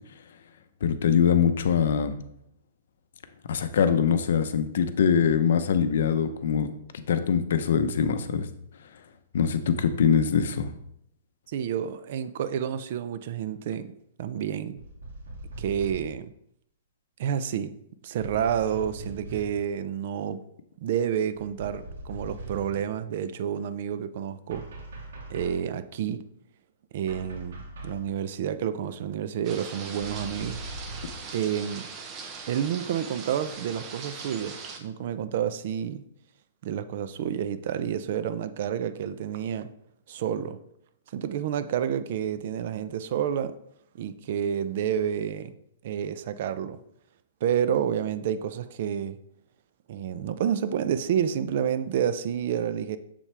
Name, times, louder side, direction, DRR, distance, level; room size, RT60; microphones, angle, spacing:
voice 1, 0.8-2.2 3.5-6.7 7.1-8.5 9.3-10.7, left 7 dB, 70° left, 9 dB, 0.7 m, -23 dB
voice 2, 11.5-13.9 14.2-14.8 15.6-16.3 17.2-17.8 18.0-20.4 20.8-24.6 25.3-26.2 26.9-30.6 31.3-31.9 32.5-36.0 36.6-39.7 40.1-40.6 41.1-43.5 43.9-45.6 45.8-46.8 47.4-49.2 49.9-53.0, right 9 dB, 50° right, 13 dB, 0.5 m, -29 dB
sound 1, 14.8-16.3 18.2-19.6 21.3-22.8 24.5-25.7 27.1-28.1 30.0-31.3, right 2 dB, 85° right, 2.4 m, -41 dB
sound 2, 29.4-34.8, right 5 dB, 25° right, 0.8 m, -40 dB
7.3 x 7.1 x 3.4 m, 0.75 s
hypercardioid pair, 165°, 0 cm